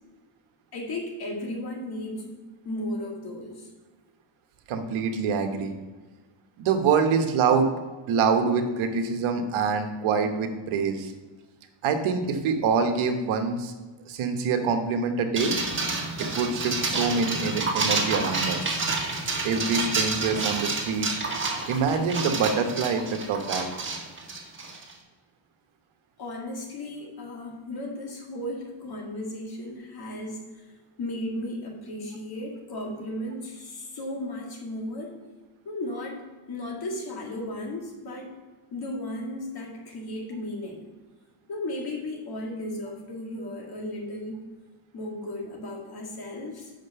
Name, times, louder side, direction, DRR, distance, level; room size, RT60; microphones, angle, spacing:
voice 1, 0.7-3.7 26.2-30.7 31.0-35.1 35.7-38.3 38.7-40.8 41.5-44.4 44.9-46.7, left 1 dB, 50° left, 0 dB, 2.1 m, -35 dB
voice 2, 4.7-5.7 6.6-7.7 8.1-11.1 11.8-13.7 14.1-15.6 16.2-18.8 19.4-21.1 21.7-23.7, right 5 dB, 75° right, 5 dB, 1.2 m, -25 dB
sound 1, 15.4-24.9, right 3 dB, 25° right, 1.7 m, -29 dB
5.9 x 5.3 x 6.7 m, 1.3 s
cardioid pair, 120°, 49 cm